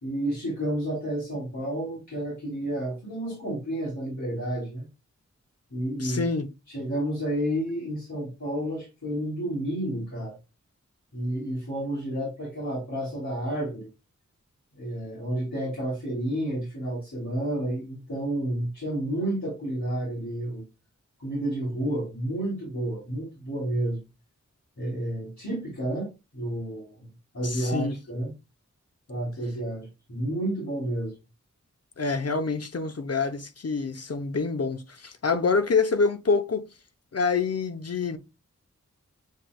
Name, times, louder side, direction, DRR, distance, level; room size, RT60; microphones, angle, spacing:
voice 1, 0.0-4.9 5.7-6.3 6.7-10.4 11.1-13.9 14.8-20.6 21.2-24.0 24.8-27.1 27.3-28.3 29.1-31.1, right 1 dB, 70° left, 2.6 m, -30 dB
voice 2, 6.0-6.5 27.4-28.0 32.0-36.7 37.1-38.2, left 4 dB, 55° left, 0.7 m, -26 dB
7.4 x 3.1 x 2.3 m
wide cardioid pair, 65°, 30 cm